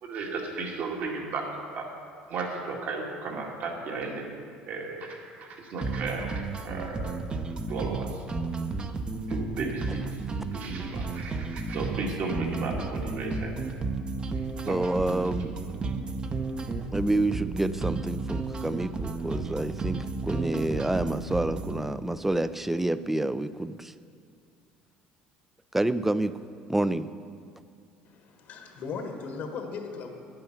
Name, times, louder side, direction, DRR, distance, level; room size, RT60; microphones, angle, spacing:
voice 1, 0.0-1.9 2.3-4.3 4.7-7.1 7.7-8.1 9.3-10.0 10.5-13.6 14.6-14.8 15.4-16.1, right 3 dB, 60° right, 0 dB, 2.1 m, -35 dB
sound 1, 5.8-21.8, right 3 dB, 30° right, 0.8 m, -33 dB
voice 2, 14.7-15.5 16.9-23.9 25.7-26.4 26.7-27.1, right 1 dB, 10° right, 14 dB, 0.4 m, -28 dB
voice 3, 28.0-30.1, left 5 dB, 65° left, 4 dB, 1.4 m, -37 dB
10.5 x 8.8 x 5.8 m, 2.3 s
supercardioid pair, 95°, 3 cm